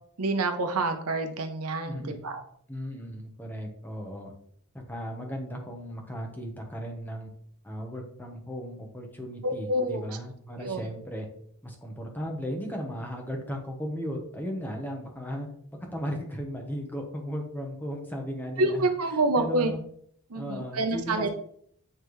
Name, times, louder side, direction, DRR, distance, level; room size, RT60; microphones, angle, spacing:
voice 1, 0.2-2.4 9.4-10.0 10.6-10.8 18.6-19.7 20.3-21.3, right 2 dB, 80° right, 7 dB, 0.8 m, -27 dB
voice 2, 1.8-2.3 2.7-4.3 4.9-7.3 7.6-11.3 11.6-15.5 15.9-18.8 19.1-19.8 20.3-21.3, equal, 10° left, 1 dB, 1.0 m, -36 dB
9.0 x 3.3 x 3.1 m, 0.65 s
head